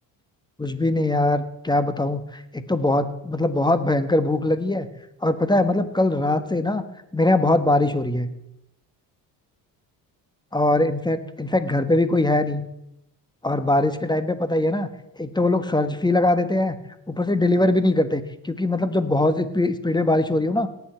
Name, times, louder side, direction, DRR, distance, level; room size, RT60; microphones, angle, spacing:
voice 1, 0.6-4.9 5.2-6.8 7.1-8.3 10.5-12.7 13.4-14.9 15.2-16.8 17.1-20.7, left 2 dB, 10° left, 11 dB, 1.3 m, -21 dB
18.0 x 8.5 x 4.5 m, 0.84 s
supercardioid pair, 65°, 47 cm